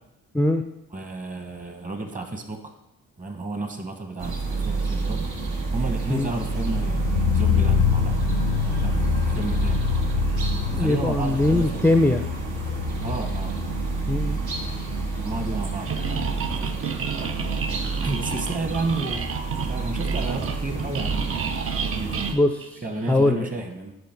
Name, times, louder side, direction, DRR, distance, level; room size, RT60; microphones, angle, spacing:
voice 1, 0.9-2.8 3.2-5.3 5.7-8.2 8.6-10.0 10.7-11.9 13.0-13.6 15.1-17.0 18.0-21.6 22.0-22.3 22.8-24.0, right 2 dB, 25° right, 5 dB, 1.3 m, -32 dB
sound 1, 4.2-22.3, right 4 dB, 75° right, 1.8 m, -28 dB
sound 2, 6.4-17.4 17.7-17.8, left 12 dB, 75° left, 0.5 m, -27 dB
voice 2, 10.7-12.2 14.1-14.4 22.3-22.8 23.1-23.5, left 2 dB, 5° left, 6 dB, 0.5 m, -21 dB
sound 3, 15.9-23.3, right 7 dB, 45° right, 0.6 m, -32 dB
9.5 x 5.1 x 4.5 m, 0.88 s
cardioid pair, 90°, 30 cm